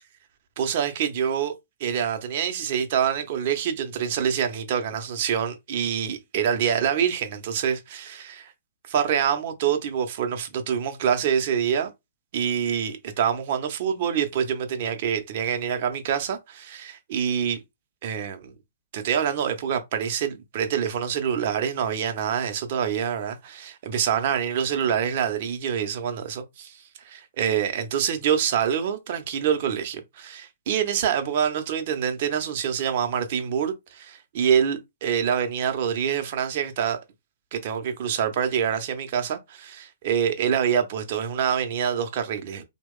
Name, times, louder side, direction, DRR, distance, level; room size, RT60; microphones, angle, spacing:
voice 1, 0.6-1.5 1.8-8.5 8.9-11.9 12.3-17.6 18.0-18.5 18.9-26.8 27.1-37.0 37.5-42.6, right 8 dB, 55° right, 0.7 m, -26 dB
3.0 x 2.2 x 3.6 m
hypercardioid pair, 125°, 0 cm